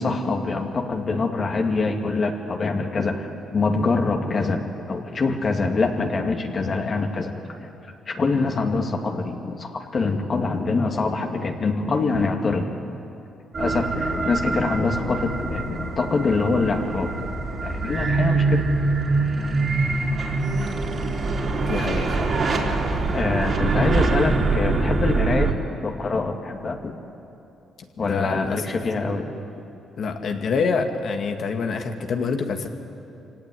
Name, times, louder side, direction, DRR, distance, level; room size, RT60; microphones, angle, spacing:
voice 1, 0.0-7.3 7.6-7.7 8.1-12.7 13.6-17.3 17.6-18.6 23.1-25.5 25.8-27.0 28.0-29.3, left 3 dB, 45° left, 3 dB, 2.4 m, -24 dB
sound 1, 13.5-25.5, right 3 dB, 45° right, 3.7 m, -24 dB
voice 2, 21.6-22.3 28.0-28.7 30.0-32.7, left 5 dB, 60° left, 5 dB, 2.1 m, -26 dB
24.0 x 17.0 x 9.9 m, 2.8 s
cardioid pair, 85°, 0 cm